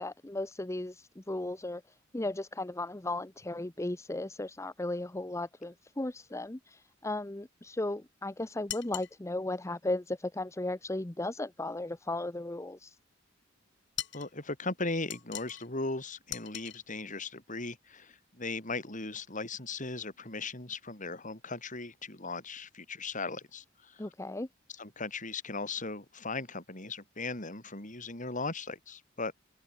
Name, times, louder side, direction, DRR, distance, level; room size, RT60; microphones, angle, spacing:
voice 1, 0.0-1.8 2.1-13.0 24.0-24.5, left 2 dB, 15° left, 0.8 m, -36 dB
sound 1, 8.7-9.2 14.0-14.3 15.1-15.7 16.3-16.8, left 12 dB, 65° left, 7.8 m, -40 dB
voice 2, 14.1-24.0 24.8-29.3, left 3 dB, 40° left, 5.8 m, -38 dB
open air
head